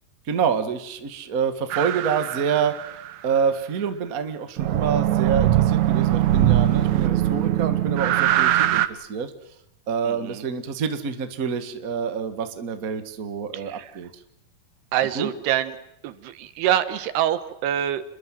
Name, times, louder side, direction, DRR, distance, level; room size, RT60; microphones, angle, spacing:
voice 1, 0.3-2.7 3.2-9.3 9.9-14.1 15.1-15.3, right 6 dB, 50° right, 8 dB, 1.0 m, -27 dB
sound 1, 1.7-3.1 4.6-8.9, right 12 dB, 70° right, 1.9 m, -21 dB
voice 2, 10.0-10.4 13.5-13.9 14.9-15.8 16.0-18.0, right 11 dB, 85° right, 12 dB, 3.3 m, -25 dB
28.5 x 21.5 x 7.7 m, 0.81 s
omnidirectional pair, 4.6 m